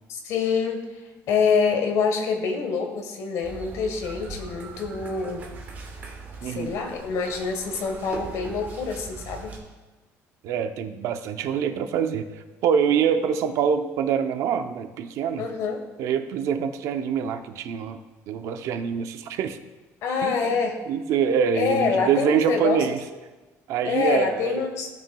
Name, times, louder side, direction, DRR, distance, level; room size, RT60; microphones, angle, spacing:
voice 1, 0.1-0.8 1.3-5.4 6.4-9.5 15.4-15.8 20.0-20.8 21.5-22.9 23.8-24.9, left 5 dB, 60° left, 4 dB, 1.3 m, -26 dB
sound 1, 3.4-9.6, right 3 dB, 30° right, 1.4 m, -40 dB
voice 2, 6.4-6.8 10.4-12.3 12.6-15.5 16.0-18.0 18.3-19.6 20.2-20.6 20.9-23.0 23.7-24.7, right 7 dB, 60° right, 8 dB, 0.6 m, -25 dB
15.5 x 6.0 x 2.3 m, 1.2 s
cardioid pair, 165°, 6 cm